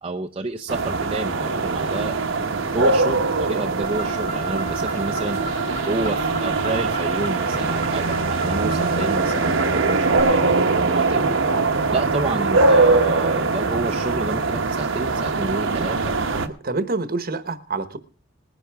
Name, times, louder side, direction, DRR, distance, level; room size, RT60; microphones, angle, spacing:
voice 1, 0.0-2.2 2.6-5.4 5.8-11.4 11.9-16.1, right 2 dB, 25° right, 2 dB, 0.6 m, -29 dB
sound 1, 0.7-16.5, right 3 dB, 70° right, 1.1 m, -22 dB
Car, 3.8-10.2, right 2 dB, 40° left, 2.8 m, -34 dB
voice 2, 16.3-18.0, right 3 dB, 50° right, 12 dB, 1.1 m, -27 dB
19.5 x 10.5 x 3.5 m, 0.38 s
head